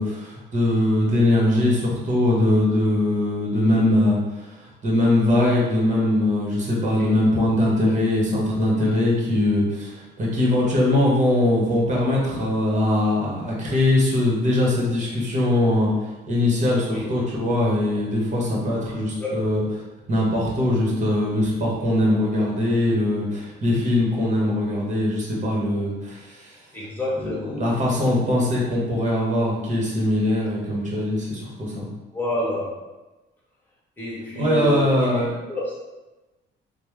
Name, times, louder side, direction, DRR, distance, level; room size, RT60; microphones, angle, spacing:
voice 1, 0.0-15.9 16.3-19.6 20.1-26.6 27.2-31.9 34.3-35.3, left 1 dB, 35° right, -4 dB, 1.1 m, -21 dB
voice 2, 19.2-19.6 26.7-27.6 32.1-32.8 34.0-35.1 35.5-35.7, left 1 dB, 10° left, -6 dB, 1.2 m, -28 dB
3.1 x 2.1 x 3.2 m, 1.1 s
cardioid pair, 90°, 20 cm